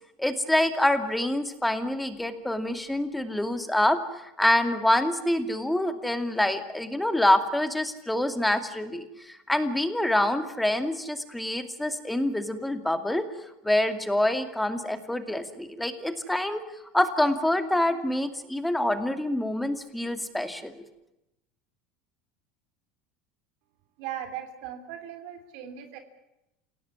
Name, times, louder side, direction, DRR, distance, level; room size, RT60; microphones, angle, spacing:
voice 1, 0.2-13.2 13.6-16.6 16.9-20.7, left 1 dB, 5° left, 8 dB, 2.5 m, -26 dB
voice 2, 24.0-26.0, right 10 dB, 65° right, 7 dB, 3.3 m, -38 dB
28.5 x 17.5 x 9.7 m, 0.90 s
supercardioid pair, 130°, 0 cm